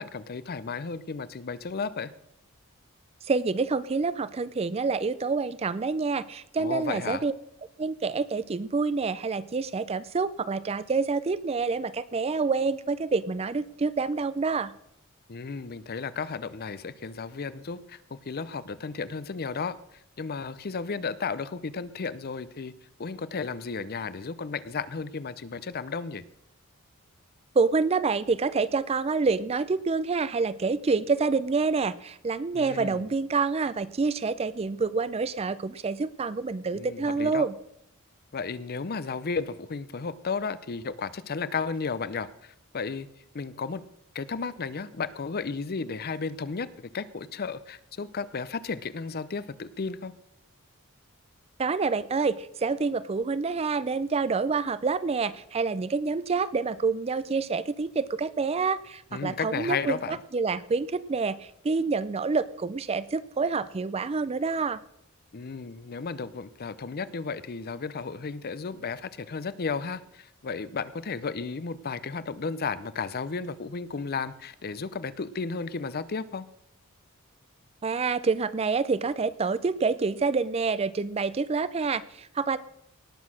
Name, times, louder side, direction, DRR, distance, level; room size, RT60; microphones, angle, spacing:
voice 1, 0.0-2.1 6.6-7.2 15.3-22.7 23.0-26.2 32.5-33.1 36.7-37.5 38.3-43.1 43.3-43.8 44.1-50.1 59.1-60.2 65.3-76.5, left 5 dB, 45° left, 16 dB, 0.6 m, -34 dB
voice 2, 3.2-7.3 7.8-14.7 27.5-37.5 51.6-64.8 77.8-82.6, right 4 dB, 30° right, 16 dB, 0.4 m, -27 dB
18.5 x 6.3 x 6.2 m, 0.76 s
head